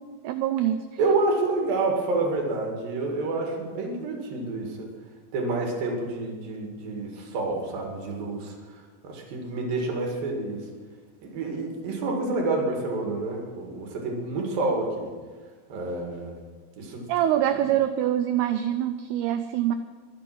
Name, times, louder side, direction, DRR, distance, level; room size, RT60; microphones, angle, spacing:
voice 1, 0.2-0.9 17.1-19.8, right 11 dB, 85° right, 9 dB, 2.3 m, -24 dB
voice 2, 1.0-4.9 5.3-8.5 9.0-10.6 11.3-15.1 15.7-16.3 16.8-17.1 17.6-17.7, right 3 dB, 55° right, 1 dB, 3.6 m, -28 dB
22.5 x 7.7 x 6.0 m, 1.5 s
omnidirectional pair, 5.2 m